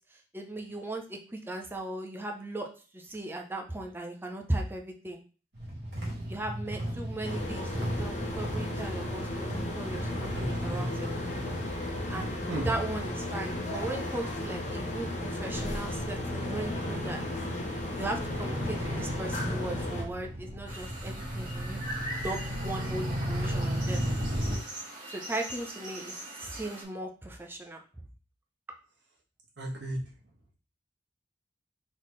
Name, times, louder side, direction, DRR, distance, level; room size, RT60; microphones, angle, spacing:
voice 1, 0.3-2.7 2.9-5.2 6.3-11.1 12.1-12.4 12.7-17.2 17.9-24.0 25.1-27.8, right 2 dB, 10° right, 2 dB, 0.6 m, -37 dB
sound 1, 5.5-24.6, equal, 70° right, 1.8 m, -36 dB
sound 2, 7.2-20.0, left 1 dB, 40° left, 0.9 m, -35 dB
voice 2, 10.4-10.9 12.5-12.7 29.6-30.0, right 1 dB, 90° right, -3 dB, 1.6 m, -34 dB
sound 3, 20.7-26.8, right 1 dB, 45° right, 1.9 m, -42 dB
4.1 x 3.7 x 3.2 m, 0.37 s
head